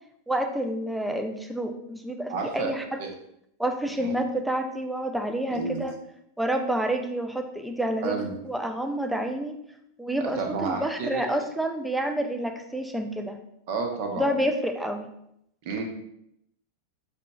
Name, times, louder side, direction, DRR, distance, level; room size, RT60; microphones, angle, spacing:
voice 1, 0.3-3.0 3.6-5.9 6.4-8.2 8.4-9.6 10.0-13.4 14.2-15.1, right 1 dB, 5° right, 5 dB, 0.5 m, -28 dB
voice 2, 2.3-2.7 3.0-3.1 4.0-4.2 5.5-5.8 8.0-8.3 10.2-11.2 13.7-14.3 15.6-15.8, right 4 dB, 50° right, 3 dB, 0.8 m, -30 dB
5.9 x 2.9 x 2.3 m, 0.76 s
figure-of-eight pair, 90°, 0 cm